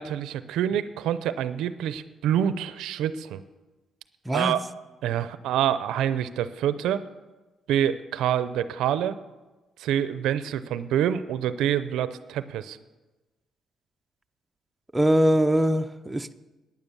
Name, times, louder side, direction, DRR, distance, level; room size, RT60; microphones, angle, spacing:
voice 1, 0.0-3.4 4.3-4.6 5.0-7.0 7.7-9.2 9.8-12.8, right 10 dB, 90° right, 0.5 m, -26 dB
voice 2, 14.9-16.3, equal, 10° right, 0.6 m, -22 dB
10.5 x 9.7 x 6.8 m
cardioid pair, 90°, 0 cm